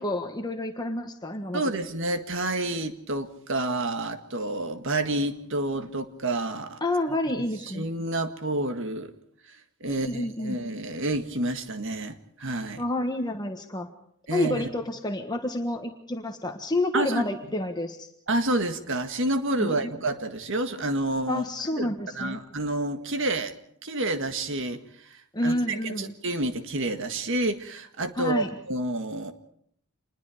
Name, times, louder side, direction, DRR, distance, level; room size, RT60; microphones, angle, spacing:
voice 1, 0.0-1.7 6.8-7.8 9.9-10.6 12.8-13.9 14.3-18.1 19.6-19.9 21.3-22.4 25.3-26.1 28.2-28.5, left 1 dB, 20° left, 4 dB, 1.4 m, -29 dB
voice 2, 1.5-6.8 7.7-9.1 9.8-12.8 14.3-14.7 16.9-17.2 18.3-21.4 21.8-23.5 23.8-24.8 25.1-29.3, right 2 dB, 60° right, 8 dB, 1.8 m, -29 dB
27.0 x 21.0 x 5.0 m, 0.68 s
head